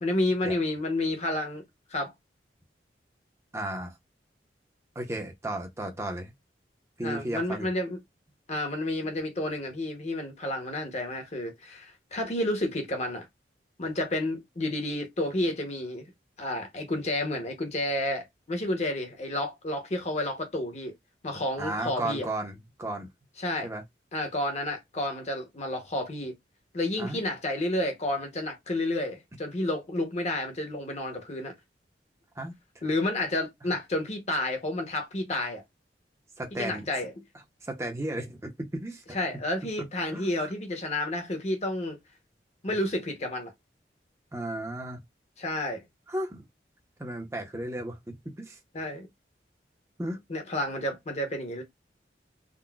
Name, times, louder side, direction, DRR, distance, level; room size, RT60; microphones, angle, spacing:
voice 1, 0.0-1.6 1.9-2.1 7.0-8.0 8.5-13.3 13.8-16.1 16.4-20.9 21.2-22.3 23.4-23.7 24.1-26.3 26.7-31.5 32.8-35.6 36.5-37.1 39.1-42.0 42.6-43.5 45.4-45.8 48.7-49.1 50.3-51.6, left 1 dB, 40° left, 0.8 m, -30 dB
voice 2, 3.5-3.9 5.0-6.3 7.0-7.7 21.6-23.1 23.6-23.8 27.0-27.2 32.4-32.8 36.4-36.9 37.6-39.2 40.1-40.5 44.3-45.0 46.1-46.4 47.0-48.6 50.0-50.2, right 1 dB, 15° right, 0.6 m, -34 dB
3.8 x 2.1 x 2.2 m
head